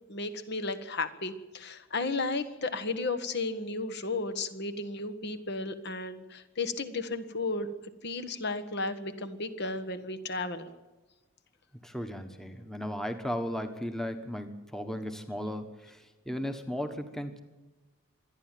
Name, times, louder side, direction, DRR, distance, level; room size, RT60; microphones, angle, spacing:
voice 1, 0.1-7.7 8.0-10.7, left 3 dB, 50° left, 9 dB, 1.5 m, -34 dB
voice 2, 11.8-17.4, equal, ahead, 7 dB, 1.3 m, -36 dB
26.5 x 10.5 x 9.2 m, 1.1 s
head